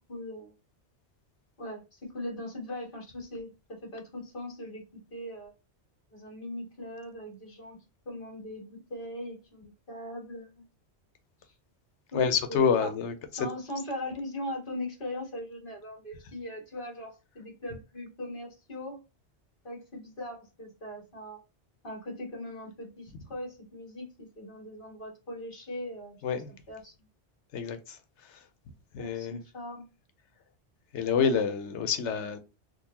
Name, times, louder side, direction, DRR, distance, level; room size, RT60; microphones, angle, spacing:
voice 1, 0.1-0.5 1.6-5.5 6.1-7.8 8.0-10.6 11.4-11.5 12.1-12.2 12.5-12.9 13.3-19.0 19.6-21.4 21.8-26.2 26.5-26.9 29.0-29.8, left 1 dB, 50° left, 1.6 m, -40 dB
voice 2, 12.1-13.1 26.2-26.5 27.5-27.8 28.9-29.4 30.9-32.4, left 6 dB, 90° left, 1.0 m, -27 dB
3.8 x 2.3 x 2.9 m
omnidirectional pair, 1.1 m